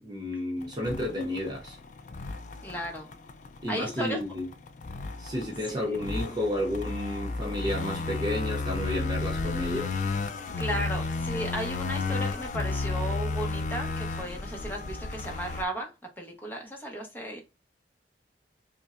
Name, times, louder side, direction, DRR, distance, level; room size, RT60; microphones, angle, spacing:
voice 1, 0.0-1.8 3.6-4.5 5.2-10.0, left 1 dB, 25° right, 0.5 m, -31 dB
sound 1, 0.6-15.6, left 3 dB, 40° left, 0.3 m, -33 dB
voice 2, 2.6-3.1 3.7-4.2 5.7-6.0 10.6-15.9 16.2-17.4, equal, 10° left, 0.9 m, -35 dB
5.2 x 2.2 x 2.4 m
head